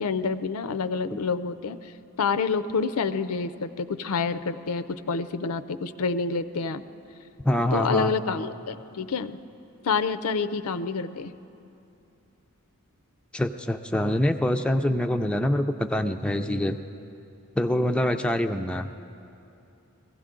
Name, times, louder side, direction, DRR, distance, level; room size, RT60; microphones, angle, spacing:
voice 1, 0.0-1.9 2.2-6.8 7.7-9.4 9.8-11.3, left 5 dB, 85° left, 11 dB, 0.5 m, -28 dB
voice 2, 7.4-8.1 13.3-16.8 17.6-18.9, left 1 dB, 5° left, 5 dB, 0.3 m, -25 dB
22.0 x 15.5 x 3.8 m, 2.7 s
head